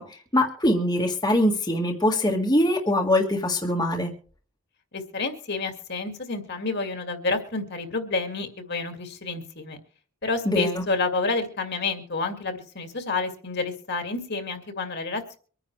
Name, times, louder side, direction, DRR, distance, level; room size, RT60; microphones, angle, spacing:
voice 1, 0.0-4.1 10.4-10.8, left 1 dB, 20° left, -1 dB, 1.6 m, -23 dB
voice 2, 4.9-9.8 10.2-15.4, left 3 dB, 50° left, 5 dB, 2.2 m, -29 dB
25.0 x 10.0 x 3.3 m, 0.43 s
head